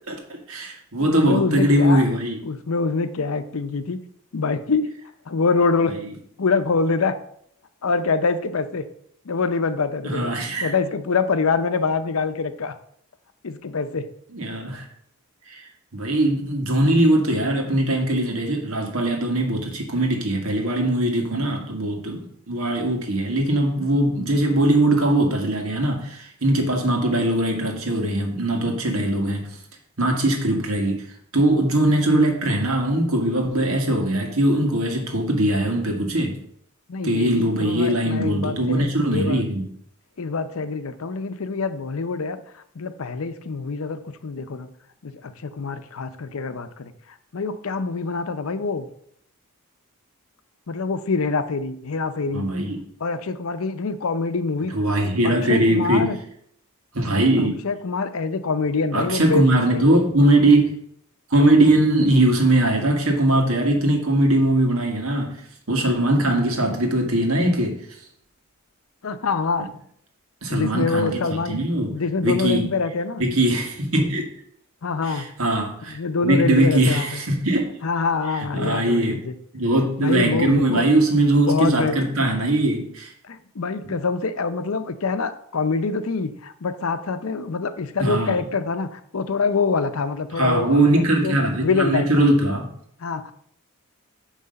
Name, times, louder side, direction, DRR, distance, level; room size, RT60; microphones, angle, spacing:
voice 1, 0.0-2.4 10.1-10.7 14.3-14.9 15.5-15.6 15.9-29.6 30.0-31.0 31.3-36.4 37.0-39.7 52.3-52.8 54.7-56.2 56.9-57.5 58.9-60.7 61.3-65.4 65.7-67.8 70.4-71.2 71.5-72.0 72.2-72.7 73.2-74.3 75.0-77.7 78.4-79.2 79.5-83.1 88.0-88.4 90.4-92.7, right 1 dB, 75° right, 1.7 m, -21 dB
voice 2, 1.0-2.0 2.4-4.0 4.3-4.9 5.3-5.9 6.4-7.2 7.8-8.8 9.3-10.3 10.6-12.7 13.4-14.1 36.9-39.4 40.2-42.4 42.8-44.7 45.0-46.9 47.3-48.9 50.7-52.5 53.0-54.7 55.0-56.2 57.4-60.0 69.0-69.7 70.5-71.6 71.9-73.3 74.8-75.3 75.9-77.2 77.8-79.4 80.0-80.8 81.4-82.0 83.3-91.4 91.6-92.3 93.0-93.3, left 4 dB, 70° left, 0.6 m, -25 dB
9.5 x 3.3 x 6.5 m
head